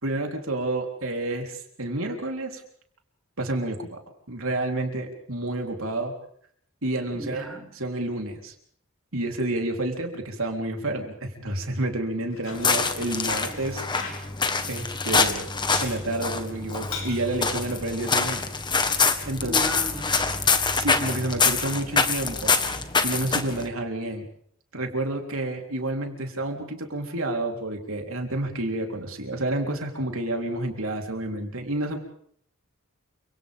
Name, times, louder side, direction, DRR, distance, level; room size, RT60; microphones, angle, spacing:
voice 1, 0.0-2.6 3.4-4.0 4.3-6.1 6.8-7.4 7.7-8.5 9.1-13.8 14.7-15.5 15.8-18.4 19.3-19.6 20.7-22.6 23.0-24.3 24.7-32.0, right 2 dB, 75° right, 2 dB, 3.9 m, -29 dB
voice 2, 7.1-7.7 19.4-20.2, left 2 dB, ahead, -1 dB, 5.9 m, -34 dB
Bicycle, 12.2-20.5, left 5 dB, 80° left, 5.2 m, -42 dB
sound 1, 12.5-23.7, left 4 dB, 20° left, 1.5 m, -25 dB
29.5 x 26.0 x 3.7 m, 0.64 s
head